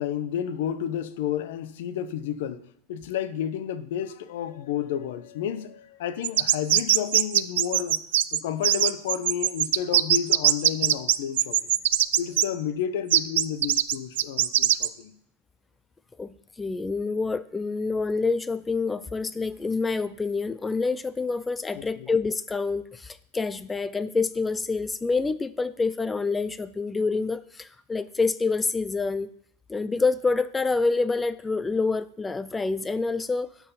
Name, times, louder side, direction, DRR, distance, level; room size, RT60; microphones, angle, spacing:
voice 1, 0.0-8.0 8.3-11.6 12.2-15.1 21.8-22.1, left 9 dB, 65° left, 0.8 m, -31 dB
sound 1, 6.2-12.4 13.1-14.9, right 13 dB, 75° right, 0.4 m, -21 dB
voice 2, 16.2-29.3 29.7-33.5, left 4 dB, 10° left, 0.3 m, -27 dB
12.0 x 4.8 x 5.6 m
supercardioid pair, 145°, 0 cm